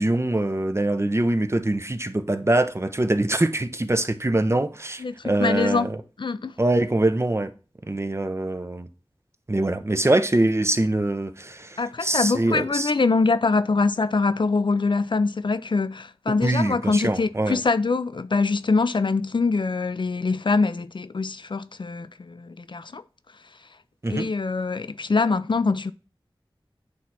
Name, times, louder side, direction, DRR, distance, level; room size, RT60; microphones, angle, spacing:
voice 1, 0.0-6.0 6.6-7.5 7.9-8.9 9.5-12.9 16.4-17.6 24.0-24.3, right 1 dB, 30° right, 0.7 m, -23 dB
voice 2, 5.0-5.9 6.2-6.5 11.8-23.0 24.1-25.9, left 4 dB, 60° left, 0.4 m, -24 dB
8.5 x 3.2 x 5.7 m
wide cardioid pair, 50°, 9 cm